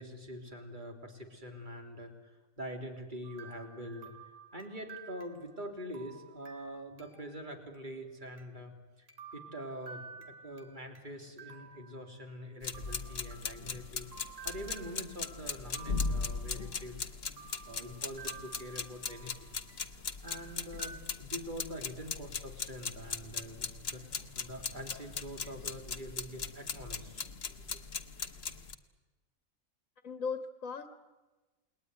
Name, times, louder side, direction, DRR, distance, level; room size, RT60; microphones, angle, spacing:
voice 1, 0.0-4.1 4.5-9.1 9.3-14.1 14.4-17.1 17.7-19.6 20.2-24.0 24.4-27.2 27.7-27.8, equal, 35° right, 3 dB, 3.5 m, -44 dB
sound 1, 3.2-7.4 7.7-7.8 8.4-8.5 9.1-11.1 11.4-12.4 12.7-16.9 17.4-19.9 20.3-21.0, right 5 dB, 60° right, 2.8 m, -52 dB
sound 2, 12.6-28.7, left 5 dB, 50° left, 1.4 m, -39 dB
voice 2, 30.0-30.9, left 5 dB, 70° left, 8 dB, 2.0 m, -38 dB
29.0 x 20.5 x 9.7 m, 1.2 s
omnidirectional pair, 1.5 m